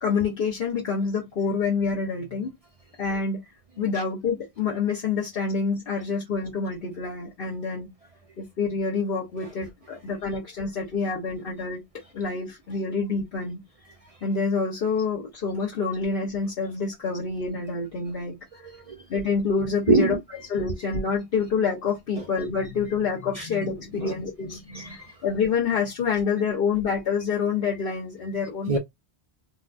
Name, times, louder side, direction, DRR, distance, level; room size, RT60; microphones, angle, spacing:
voice 1, 0.0-2.5 3.0-3.4 3.8-7.9 8.4-11.8 12.1-13.6 14.2-18.4 19.1-20.2 20.5-28.8, left 5 dB, 60° left, 1.0 m, -27 dB
voice 2, 18.5-19.0 19.9-20.2 22.2-22.3 23.3-23.5 24.0-24.1 24.5-25.1 28.4-28.8, right 3 dB, 50° right, 0.4 m, -26 dB
3.8 x 2.2 x 2.4 m
omnidirectional pair, 1.1 m